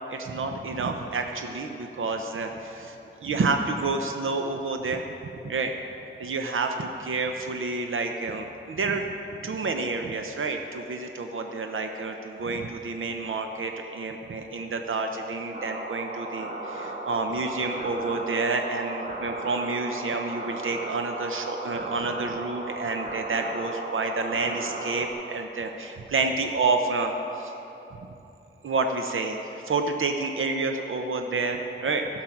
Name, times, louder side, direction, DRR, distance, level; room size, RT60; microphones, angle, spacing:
voice 1, 0.1-5.0 5.4-5.7 6.2-9.1 9.4-27.5 28.6-32.1, right 3 dB, 80° right, 4 dB, 0.7 m, -29 dB
sound 1, 15.5-25.1, right 2 dB, 45° right, 1.4 m, -35 dB
15.5 x 6.5 x 5.8 m, 3.0 s
wide cardioid pair, 110°, 21 cm